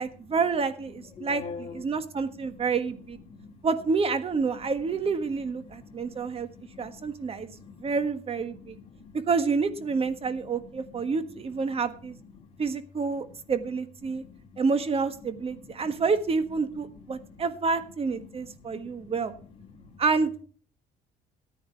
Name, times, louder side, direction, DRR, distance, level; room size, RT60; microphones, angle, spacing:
voice 1, 0.0-3.2 3.6-6.5 6.8-8.8 9.3-12.1 12.6-14.2 14.6-19.3 20.0-20.4, right 4 dB, 35° right, 11 dB, 1.4 m, -28 dB
voice 2, 1.1-2.0 2.3-2.6 3.2-3.7 4.5-4.6 5.6-7.1 7.4-8.0 8.5-9.2 10.2-11.2 11.6-11.8 12.1-12.5 13.2-13.4 14.1-14.6 15.4-16.0 16.8-17.5 18.2-19.1 19.6-20.0, left 5 dB, 35° left, -1 dB, 2.7 m, -47 dB
14.0 x 9.2 x 4.5 m, 0.42 s
cardioid pair, 110°, 17 cm